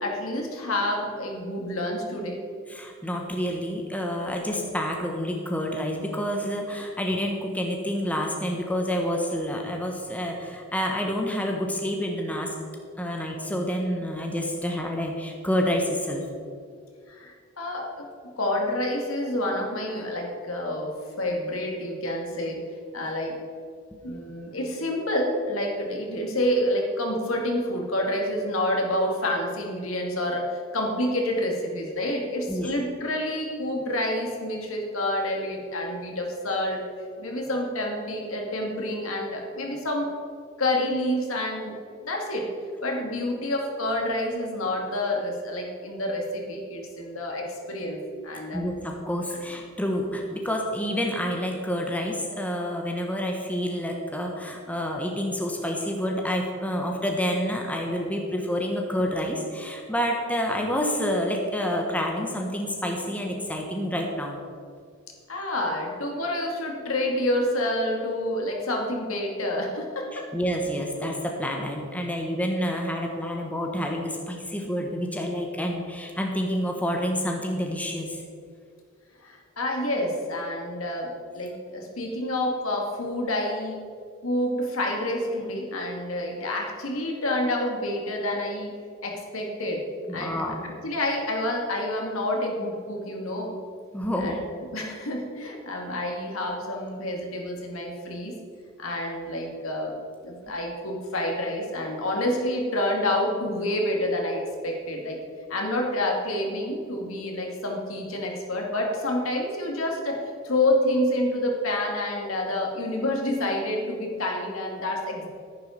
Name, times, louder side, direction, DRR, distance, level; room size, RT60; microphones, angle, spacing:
voice 1, 0.0-2.4 17.1-22.6 22.9-23.3 24.0-36.8 37.2-40.1 40.6-41.7 42.0-42.5 42.8-48.6 65.3-70.3 79.2-83.8 84.2-88.8 89.0-89.8 90.1-90.4 90.8-93.6 94.2-94.4 94.7-98.4 98.8-99.9 100.2-105.2 105.5-115.3, left 1 dB, 75° left, 1 dB, 2.3 m, -28 dB
voice 2, 2.7-12.5 13.0-16.3 32.5-32.7 48.5-64.4 70.1-78.2 90.1-90.7 93.9-94.4, equal, 5° left, 1 dB, 1.2 m, -28 dB
10.5 x 10.5 x 5.2 m, 2.2 s
head